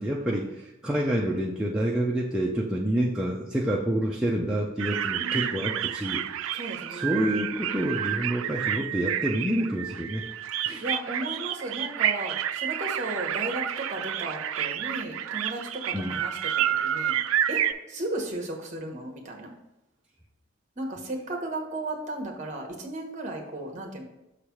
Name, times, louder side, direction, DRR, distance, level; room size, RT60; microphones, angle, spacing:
voice 1, 0.0-10.2 10.7-10.8 15.9-16.2, right 1 dB, 5° right, -5 dB, 0.5 m, -28 dB
sound 1, 4.8-17.7, right 10 dB, 85° right, 0.3 m, -29 dB
voice 2, 5.2-5.9 6.5-7.3 10.8-16.5 16.8-17.1 17.5-17.6 17.9-19.5 20.8-24.0, right 1 dB, 35° right, 1 dB, 1.1 m, -35 dB
6.2 x 3.3 x 5.8 m, 0.94 s
head